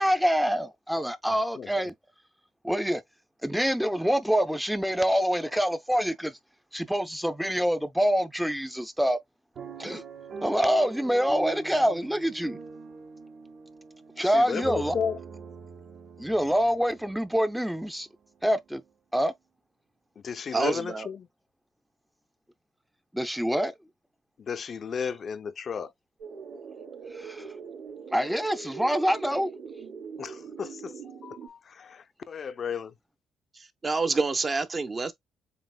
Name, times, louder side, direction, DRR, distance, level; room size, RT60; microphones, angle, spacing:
voice 1, 0.0-1.9 2.6-3.0 3.4-6.3 6.7-9.2 9.8-10.0 10.4-12.6 14.2-14.9 16.2-18.1 18.4-18.8 19.1-19.3 23.1-23.7 27.1-27.4 28.1-29.5, equal, ahead, 0.6 m, -26 dB
sound 1, 9.5-17.7 18.3-18.4 18.6-18.9, right 4 dB, 55° right, 1.5 m, -42 dB
voice 2, 14.2-15.2 20.2-21.3 24.4-25.9 30.2-32.9, left 6 dB, 50° left, 0.5 m, -34 dB
voice 3, 20.5-21.1 33.6-35.1, right 3 dB, 30° right, 0.8 m, -27 dB
sound 2, 26.2-31.5, right 5 dB, 75° right, 2.5 m, -42 dB
7.6 x 3.0 x 2.2 m
cardioid pair, 90°, 0 cm